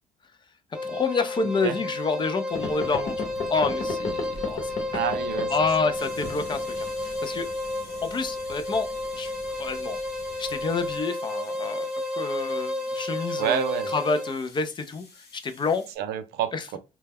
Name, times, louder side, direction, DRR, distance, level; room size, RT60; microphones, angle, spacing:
sound 1, 0.7-14.4, left 2 dB, 5° right, 0.7 m, -32 dB
voice 1, 0.8-4.7 5.5-7.5 8.0-8.9 9.2-9.3 9.6-10.0 10.4-13.6 13.9-15.8 16.5-16.6, left 4 dB, 30° left, 0.4 m, -28 dB
voice 2, 1.4-1.8 4.9-5.5 13.4-13.9 16.0-16.8, right 9 dB, 75° right, 0.4 m, -28 dB
sound 2, 2.5-11.0, left 4 dB, 45° left, 0.9 m, -38 dB
sound 3, 5.9-15.9, left 3 dB, 80° left, 1.2 m, -50 dB
2.2 x 2.0 x 3.4 m
cardioid pair, 110°, 17 cm